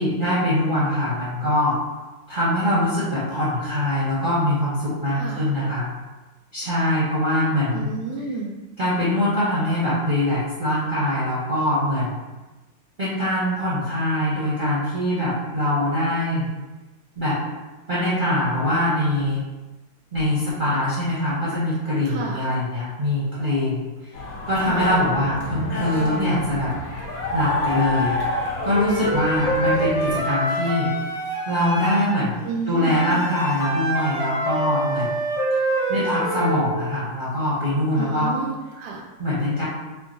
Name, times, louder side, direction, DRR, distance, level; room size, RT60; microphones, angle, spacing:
voice 1, 0.0-1.8 2.3-5.9 6.5-7.9 8.8-12.2 13.0-16.5 17.2-17.4 17.9-19.4 20.1-23.8 24.5-26.7 27.3-28.2 28.6-30.9 31.5-32.4 32.7-35.1 35.5-35.6 35.9-38.3 39.2-39.6, left 1 dB, 35° right, -11 dB, 0.9 m, -23 dB
voice 2, 5.1-5.4 7.7-8.5 22.1-22.5 24.6-24.9 32.4-33.2 38.0-39.0, right 4 dB, 70° right, -1 dB, 1.0 m, -31 dB
sound 1, 24.1-30.2, left 1 dB, 60° left, 1.1 m, -29 dB
Wind instrument woodwind instrument, 28.6-32.1 32.9-36.6, right 1 dB, 85° left, 1.6 m, -26 dB
3.6 x 2.1 x 3.9 m, 1.1 s
omnidirectional pair, 1.9 m